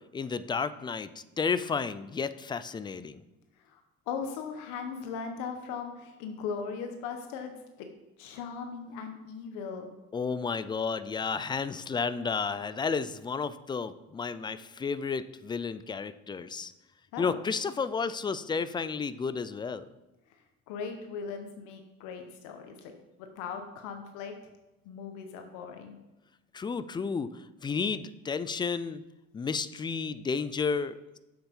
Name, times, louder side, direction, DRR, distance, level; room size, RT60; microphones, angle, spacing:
voice 1, 0.1-3.2 10.1-16.7 17.2-19.9 26.5-29.0 29.3-31.2, left 5 dB, 15° left, 14 dB, 0.4 m, -32 dB
voice 2, 4.1-7.9 8.2-9.9 17.1-17.4 20.3-22.9 23.2-24.3 24.8-26.0, left 6 dB, 85° left, 5 dB, 1.2 m, -39 dB
7.5 x 7.1 x 5.4 m, 1.0 s
cardioid pair, 125°, 29 cm